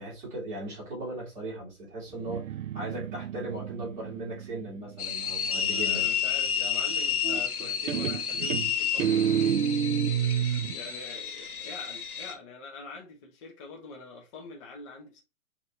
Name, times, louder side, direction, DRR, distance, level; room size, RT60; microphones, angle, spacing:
voice 1, 0.0-2.5 2.7-6.1, right 2 dB, 15° right, 2.4 m, -37 dB
Guitar, 2.1-5.7 7.2-7.6 7.9-10.8, right 9 dB, 60° right, 0.5 m, -30 dB
sound 1, 5.0-12.3, left 8 dB, 75° left, 1.2 m, -31 dB
voice 2, 5.6-9.8 10.2-15.2, left 3 dB, 20° left, 0.8 m, -44 dB
6.3 x 2.9 x 2.6 m
figure-of-eight pair, 135°, 45 cm